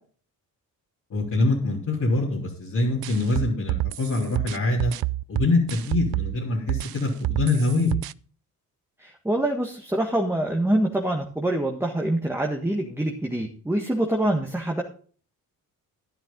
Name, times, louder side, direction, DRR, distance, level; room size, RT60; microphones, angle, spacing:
voice 1, 1.1-4.9 5.3-7.9, left 2 dB, 55° left, -6 dB, 3.6 m, -24 dB
sound 1, 3.0-6.4 6.7-8.1, right 17 dB, 75° right, 0.5 m, -28 dB
voice 2, 9.0-14.8, right 1 dB, 5° right, 1 dB, 1.6 m, -25 dB
11.5 x 10.5 x 3.9 m, 0.43 s
cardioid pair, 90°, 36 cm